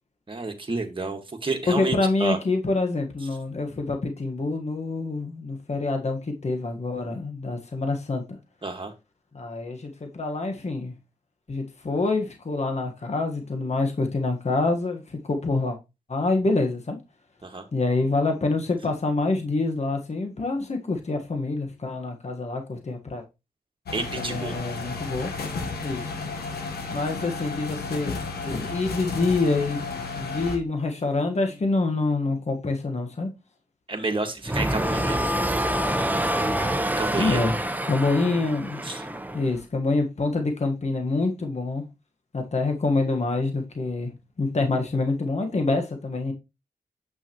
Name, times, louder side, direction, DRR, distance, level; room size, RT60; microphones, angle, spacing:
voice 1, 0.3-2.4 8.6-8.9 17.4-17.6 23.9-24.6 33.9-35.2 37.0-37.4 38.8-39.0, right 3 dB, 30° right, 1.8 m, -30 dB
voice 2, 1.7-8.4 9.3-10.9 11.5-15.8 16.1-17.0 17.7-23.2 23.9-25.3 25.8-26.0 26.9-28.1 28.4-29.8 30.2-33.3 37.2-37.6 37.9-38.8 39.3-41.8 42.3-44.1 44.4-46.3, left 3 dB, 45° left, 1.5 m, -26 dB
sound 1, 23.9-30.6, left 4 dB, 85° left, 1.3 m, -33 dB
sound 2, 34.4-39.6, right 1 dB, 10° right, 1.0 m, -26 dB
8.2 x 5.7 x 3.0 m
cardioid pair, 50°, 16 cm